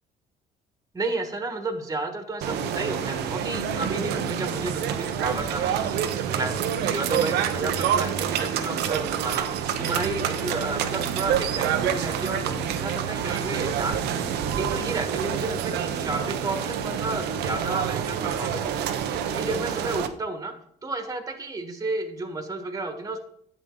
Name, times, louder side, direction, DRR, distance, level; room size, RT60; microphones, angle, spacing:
voice 1, 0.9-18.9 19.3-20.5 20.8-23.2, right 2 dB, 20° right, 6 dB, 1.5 m, -32 dB
sound 1, 2.4-20.1, right 8 dB, 80° right, 0.8 m, -27 dB
sound 2, 9.8-15.4, right 6 dB, 55° right, 1.2 m, -39 dB
11.0 x 8.1 x 3.8 m, 0.68 s
cardioid pair, 110°, 17 cm